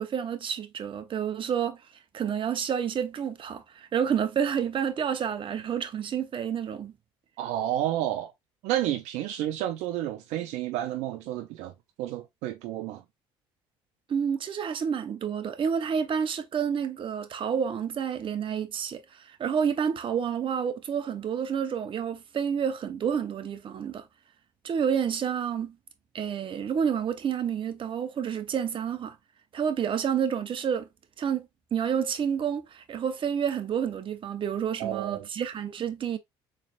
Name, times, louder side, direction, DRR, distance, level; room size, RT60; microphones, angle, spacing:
voice 1, 0.0-1.8 2.1-6.9 14.1-24.1 24.6-25.8 26.1-29.2 29.5-30.9 31.2-36.2, right 7 dB, 45° right, 0.8 m, -29 dB
voice 2, 7.4-8.3 8.6-11.7 12.0-13.0 34.8-35.3, right 12 dB, 75° right, 0.4 m, -30 dB
4.0 x 3.3 x 2.4 m
supercardioid pair, 70°, 12 cm